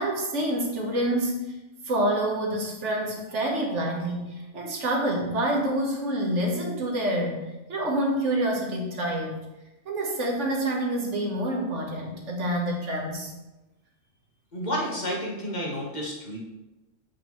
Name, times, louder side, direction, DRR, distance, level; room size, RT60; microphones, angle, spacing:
voice 1, 0.0-1.5 1.8-9.4 9.8-13.3, right 1 dB, 70° right, 0 dB, 1.4 m, -27 dB
voice 2, 14.5-16.4, equal, 35° left, -4 dB, 1.4 m, -30 dB
7.4 x 5.1 x 3.1 m, 1.0 s
omnidirectional pair, 1.3 m